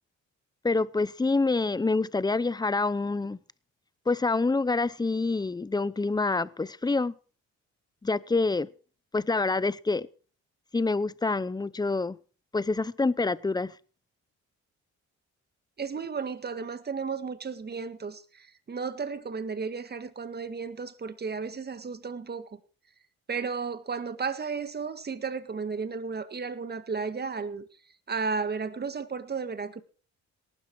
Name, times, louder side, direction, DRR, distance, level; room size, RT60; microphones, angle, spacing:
voice 1, 0.6-3.4 4.1-7.1 8.0-8.7 9.1-10.1 10.7-12.2 12.5-13.7, left 3 dB, 15° left, 0.7 m, -26 dB
voice 2, 15.8-22.6 23.3-27.7 28.1-29.8, right 5 dB, 35° right, 1.8 m, -34 dB
18.0 x 13.0 x 4.7 m
cardioid pair, 90°, 30 cm